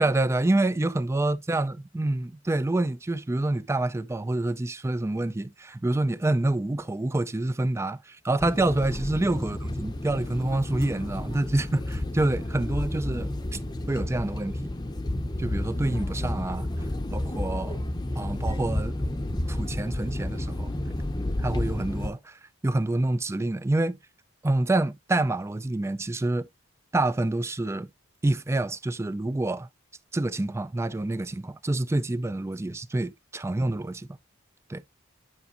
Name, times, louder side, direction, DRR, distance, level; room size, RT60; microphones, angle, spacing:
voice 1, 0.0-13.6 13.9-14.6 15.4-16.9 17.1-17.8 18.2-18.9 19.5-20.9 21.4-24.0 24.4-26.5 26.9-27.9 28.2-29.7 30.1-34.2 34.7-34.8, right 2 dB, 15° right, 0.4 m, -27 dB
sound 1, 8.4-22.1, left 1 dB, 20° left, 0.7 m, -31 dB
9.6 x 5.9 x 2.5 m
head